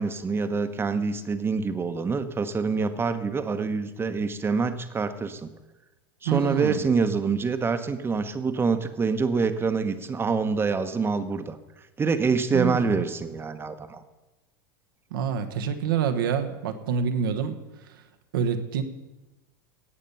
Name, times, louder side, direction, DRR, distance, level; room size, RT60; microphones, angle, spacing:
voice 1, 0.0-5.5 6.2-11.6 12.0-14.0, right 4 dB, 20° right, 9 dB, 1.1 m, -26 dB
voice 2, 6.2-6.9 12.5-13.0 15.1-17.6 18.3-18.8, right 7 dB, 75° right, 7 dB, 1.3 m, -26 dB
17.0 x 6.7 x 5.6 m, 1.1 s
hypercardioid pair, 95°, 12 cm